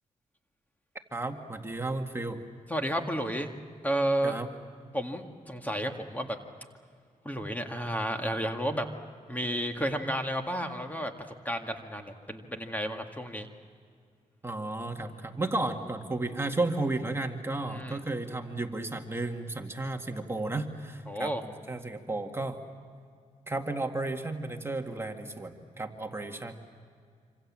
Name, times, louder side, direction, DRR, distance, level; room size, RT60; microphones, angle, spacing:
voice 1, 1.1-2.4 4.2-4.5 14.4-22.6 23.5-26.6, right 2 dB, 20° right, 3 dB, 2.0 m, -33 dB
voice 2, 2.7-3.5 3.8-4.4 4.9-6.4 7.3-8.9 9.3-11.1 11.5-13.5 17.7-18.0 21.1-21.4, equal, 10° left, 4 dB, 2.0 m, -31 dB
26.5 x 26.5 x 7.5 m, 2.2 s
cardioid pair, 90°, 13 cm